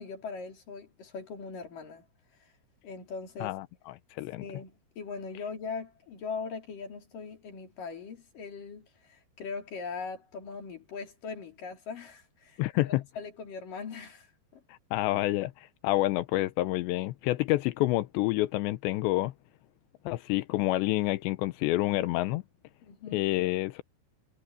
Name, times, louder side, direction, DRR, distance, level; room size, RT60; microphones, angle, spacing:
voice 1, 0.0-2.0 2.4-2.5 2.8-3.6 4.4-14.3 14.5-14.6 22.8-23.3, left 5 dB, 50° left, 5.2 m, -40 dB
voice 2, 3.4-4.4 12.6-13.0 14.7-19.3 20.1-22.4 23.1-23.8, left 17 dB, 85° left, 2.9 m, -28 dB
omnidirectional pair, 5.3 m